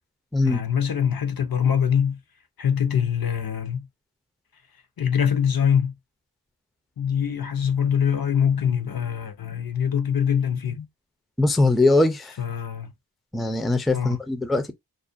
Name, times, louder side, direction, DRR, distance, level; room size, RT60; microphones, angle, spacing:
voice 1, 0.4-2.2 2.6-3.9 5.0-5.9 7.0-10.9 12.4-12.9 13.9-14.2, left 8 dB, 65° left, 0.7 m, -23 dB
voice 2, 11.4-12.3 13.3-14.7, left 2 dB, ahead, 0.4 m, -21 dB
2.5 x 2.1 x 2.4 m
wide cardioid pair, 65°, 39 cm